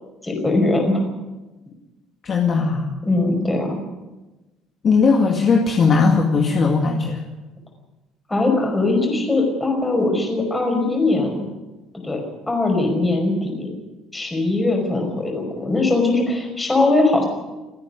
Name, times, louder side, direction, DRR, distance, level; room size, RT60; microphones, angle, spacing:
voice 1, 0.2-1.0 3.0-3.8 8.3-11.4 12.0-12.2 12.5-13.7 14.1-17.2, left 2 dB, 10° left, 2 dB, 5.2 m, -20 dB
voice 2, 2.2-2.9 4.8-7.2, left 4 dB, 30° left, 1 dB, 2.1 m, -18 dB
28.5 x 9.8 x 9.8 m, 1.1 s
cardioid pair, 165°, 0 cm